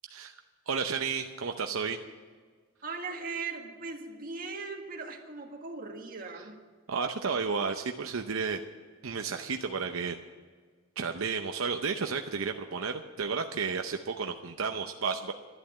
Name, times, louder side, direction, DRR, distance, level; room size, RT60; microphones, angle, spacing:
voice 1, 0.7-2.0 6.9-8.6 9.0-10.2 11.0-15.3, right 5 dB, 80° right, 5 dB, 0.7 m, -32 dB
voice 2, 2.8-6.6, right 4 dB, 45° right, 2 dB, 1.8 m, -39 dB
12.0 x 11.0 x 7.5 m, 1.5 s
head